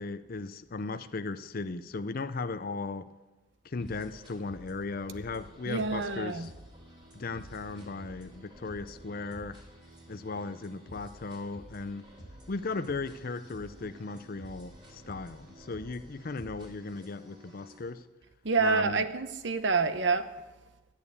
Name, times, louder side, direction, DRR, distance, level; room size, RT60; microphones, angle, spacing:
voice 1, 0.0-3.1 3.6-6.5 7.1-9.6 10.1-12.1 12.5-18.0 18.6-19.0, left 3 dB, 50° left, 0.6 m, -37 dB
sound 1, 3.8-17.9, equal, 25° right, 3.4 m, -51 dB
voice 2, 5.7-6.5 18.4-20.3, right 4 dB, 65° right, 0.9 m, -27 dB
13.5 x 9.0 x 8.4 m
head